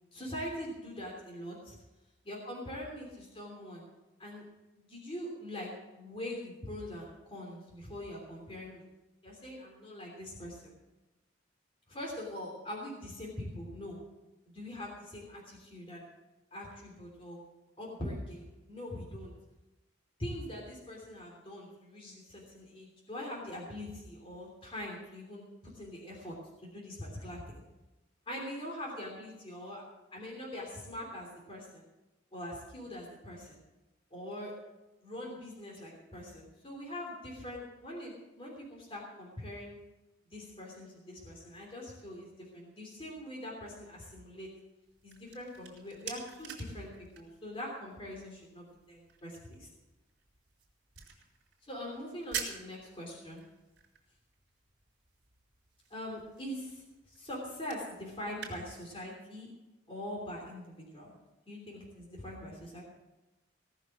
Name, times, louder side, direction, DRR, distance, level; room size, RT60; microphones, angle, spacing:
voice 1, 0.1-1.8 2.2-3.8 4.2-4.4 4.7-8.8 9.2-10.8 11.9-14.0 14.5-16.0 16.5-17.4 17.8-19.3 20.2-27.6 28.3-29.8 30.1-31.9 32.3-33.6 34.1-34.5 35.0-39.8 40.3-44.5 45.0-49.7 51.6-53.4 55.9-59.5 59.9-61.1 61.5-62.8, left 1 dB, 30° left, -2 dB, 3.1 m, -43 dB
sound 1, 44.8-58.5, right 7 dB, 60° right, 3.5 m, -48 dB
17.5 x 6.5 x 7.5 m, 1.0 s
head